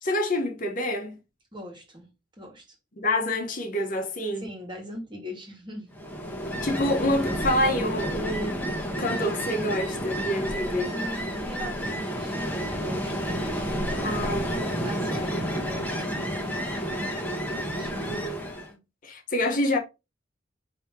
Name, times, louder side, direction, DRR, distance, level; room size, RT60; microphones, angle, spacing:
voice 1, 0.0-1.2 3.0-4.5 6.6-8.6 9.0-10.9 14.0-14.7 18.0-18.4 19.0-19.8, left 1 dB, 45° left, 1.0 m, -27 dB
voice 2, 1.5-2.6 4.4-5.9 10.4-10.6 10.9-13.4 14.2-16.7 17.7-18.2 18.7-18.8, equal, 25° right, 1.5 m, -41 dB
Ocean, 5.9-18.7, equal, 10° left, 1.0 m, -30 dB
5.0 x 2.8 x 3.6 m
head